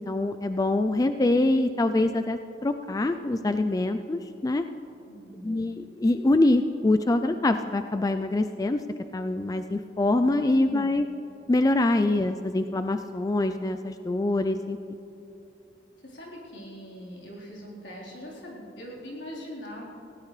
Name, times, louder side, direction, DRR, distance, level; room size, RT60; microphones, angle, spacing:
voice 1, 0.1-4.7 5.4-8.8 9.1-11.1 11.5-14.8, left 2 dB, 20° left, 8 dB, 0.3 m, -24 dB
voice 2, 5.1-5.6 10.6-11.0 16.0-19.8, equal, 75° left, -4 dB, 4.0 m, -42 dB
20.0 x 17.0 x 3.3 m, 2.8 s
head